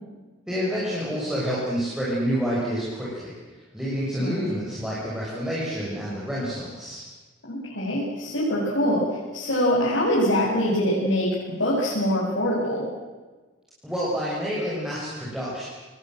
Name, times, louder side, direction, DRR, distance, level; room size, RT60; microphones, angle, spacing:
voice 1, 0.5-7.0 13.8-15.6, equal, 5° right, -7 dB, 6.5 m, -28 dB
voice 2, 4.2-4.5 7.5-9.0 9.3-12.9, equal, 65° left, -7 dB, 7.6 m, -24 dB
29.0 x 20.0 x 7.8 m, 1.3 s
head